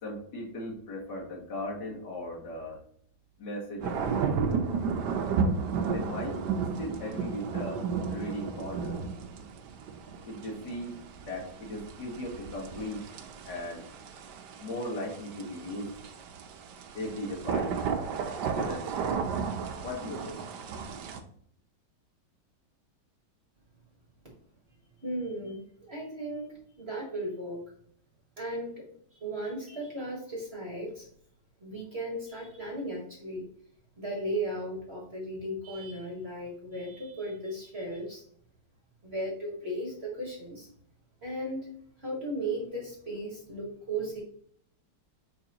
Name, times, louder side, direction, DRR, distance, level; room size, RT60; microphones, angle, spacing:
voice 1, 0.0-2.8 3.4-4.7 5.9-6.4 6.8-7.8 8.1-9.0 10.2-13.0 13.5-13.9 14.6-15.9 16.9-17.8 18.5-18.9 19.8-20.4, left 1 dB, 55° left, -3 dB, 2.1 m, -37 dB
sound 1, 3.8-21.2, right 5 dB, 65° right, 1.2 m, -33 dB
voice 2, 25.0-27.6 28.4-28.8 29.1-31.1 31.6-33.5 34.0-38.2 39.0-40.7 41.2-41.7 42.0-44.2, right 1 dB, 35° right, -2 dB, 1.5 m, -36 dB
6.8 x 5.3 x 2.9 m, 0.63 s
omnidirectional pair, 2.3 m